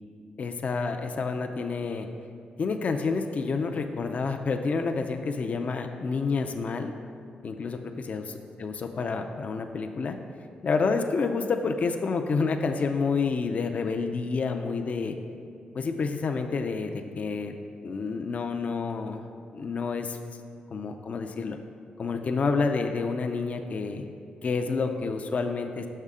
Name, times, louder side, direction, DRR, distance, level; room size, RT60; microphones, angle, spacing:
voice 1, 0.4-2.1 2.6-6.9 7.4-8.2 8.6-10.1 10.6-15.1 15.7-17.5 17.8-19.3 19.5-20.2 20.7-21.6 22.0-24.1 24.4-25.9, left 4 dB, 50° left, 5 dB, 0.4 m, -29 dB
6.5 x 5.4 x 3.6 m, 2.4 s
cardioid pair, 95°, 3 cm